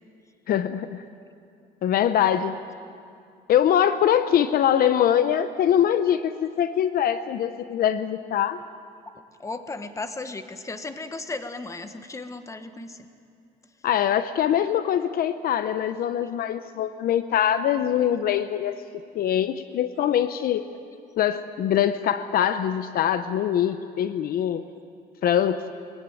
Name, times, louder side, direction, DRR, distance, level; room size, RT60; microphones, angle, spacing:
voice 1, 0.5-1.0 1.8-2.6 3.5-8.6 13.8-18.8 19.1-20.6 21.2-24.7 25.2-25.7, left 10 dB, 60° left, 12 dB, 0.8 m, -23 dB
voice 2, 9.4-13.1 16.2-16.3, left 3 dB, 20° left, 9 dB, 1.4 m, -35 dB
22.0 x 17.0 x 9.1 m, 2.4 s
cardioid pair, 110°, 17 cm